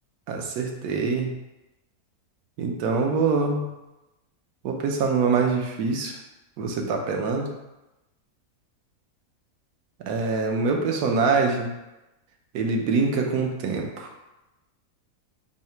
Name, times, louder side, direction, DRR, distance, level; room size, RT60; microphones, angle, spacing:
voice 1, 0.3-1.3 2.6-3.7 4.6-6.2 6.6-7.5 10.0-11.7 12.5-14.1, right 4 dB, 80° right, 2 dB, 1.1 m, -24 dB
3.2 x 2.8 x 4.3 m, 0.99 s
omnidirectional pair, 1.6 m